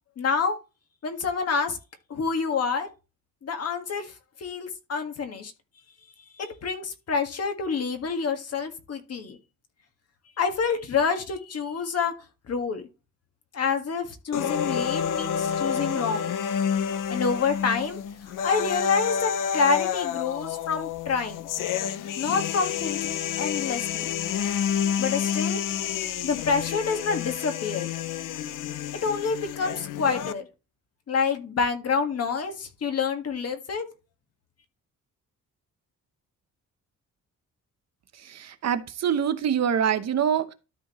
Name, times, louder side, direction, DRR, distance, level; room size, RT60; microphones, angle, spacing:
voice 1, 0.2-0.6 1.0-1.8 2.1-2.9 3.4-4.1 4.4-5.5 6.4-9.4 10.4-12.1 12.5-12.8 13.5-16.3 17.1-21.5 22.2-24.1 25.0-25.6 26.2-27.9 28.9-30.4 31.1-33.9, left 5 dB, 50° left, 1.7 m, -27 dB
sound 1, 14.3-30.3, left 8 dB, 75° left, 0.7 m, -29 dB
voice 2, 38.4-40.5, right 8 dB, 55° right, 0.9 m, -25 dB
13.0 x 4.4 x 3.0 m
cardioid pair, 140°, 32 cm